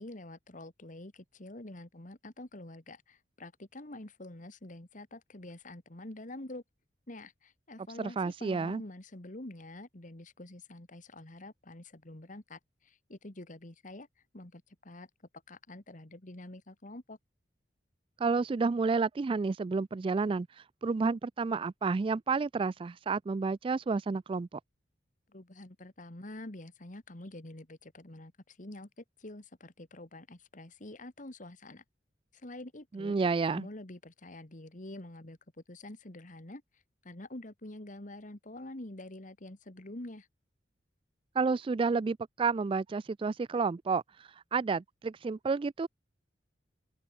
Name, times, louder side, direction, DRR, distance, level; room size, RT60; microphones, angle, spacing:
voice 1, 0.0-6.6 7.1-14.1 14.3-15.1 15.5-17.2 25.3-31.8 32.4-33.2 33.5-35.4 35.7-36.6 37.0-40.3, left 1 dB, 45° left, 2.0 m, -47 dB
voice 2, 8.0-8.8 18.2-20.5 20.8-24.6 32.9-33.7 41.4-45.9, right 4 dB, 30° right, 0.3 m, -30 dB
open air
head